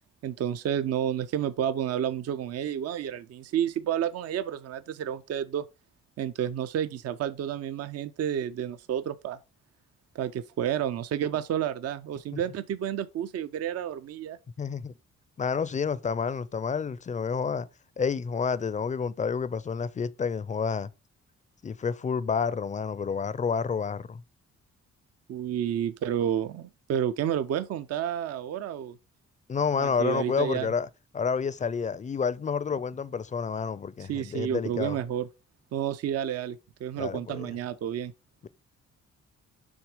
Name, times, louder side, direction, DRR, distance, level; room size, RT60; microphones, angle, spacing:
voice 1, 0.2-5.7 6.2-9.4 10.1-14.4 25.3-29.0 29.8-30.7 34.1-35.3 35.7-38.1, right 9 dB, 55° right, 0.5 m, -30 dB
voice 2, 14.6-14.9 15.4-17.7 18.0-20.9 21.6-24.2 29.5-30.9 31.1-35.0 37.0-37.5 38.4-38.5, left 6 dB, 25° left, 0.4 m, -29 dB
6.2 x 3.5 x 4.9 m
cardioid pair, 110°, 29 cm